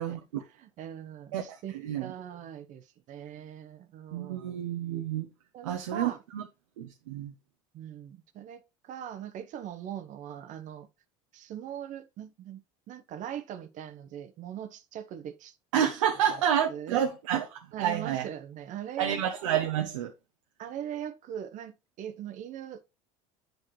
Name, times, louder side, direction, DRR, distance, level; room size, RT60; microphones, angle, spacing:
voice 1, 0.0-4.6 5.5-6.2 7.7-10.9 11.3-12.6 12.9-15.9 16.3-16.4 16.7-17.0 17.7-19.2 20.6-22.8, right 9 dB, 55° right, 1.0 m, -41 dB
voice 2, 4.1-5.3 5.6-6.4 6.8-7.3 15.7-18.2 19.0-20.1, right 9 dB, 85° right, 0.8 m, -29 dB
7.8 x 5.8 x 3.1 m
hypercardioid pair, 85°, 16 cm